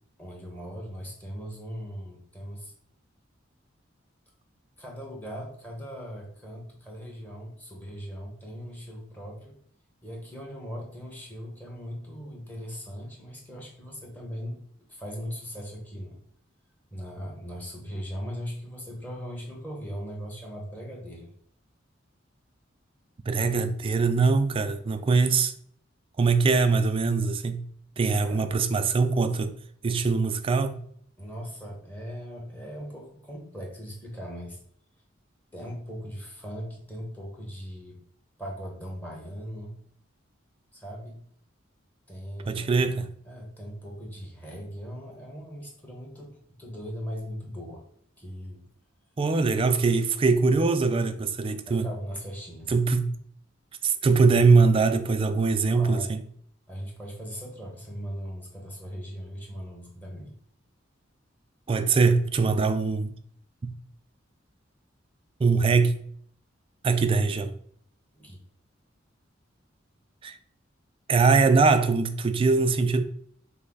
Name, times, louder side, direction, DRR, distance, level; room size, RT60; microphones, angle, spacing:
voice 1, 0.2-2.7 4.8-9.5 10.0-14.6 14.9-16.2 16.9-21.3 23.3-23.5 28.2-28.5 31.2-34.6 35.5-38.0 38.4-39.7 40.7-41.2 42.1-42.8 43.2-47.8 48.2-48.6 51.6-52.7 53.9-54.2 55.7-56.2 56.7-60.3 68.1-68.4, equal, 10° left, 1.1 m, -39 dB
voice 2, 23.3-25.5 26.2-27.7 28.0-29.6 29.8-30.8 42.5-43.1 49.2-51.9 52.7-53.2 53.8-56.2 61.7-63.2 63.6-63.7 65.4-66.0 66.8-67.5 70.2-70.4 71.1-73.0, right 4 dB, 30° right, 0.3 m, -22 dB
5.3 x 2.1 x 3.9 m
head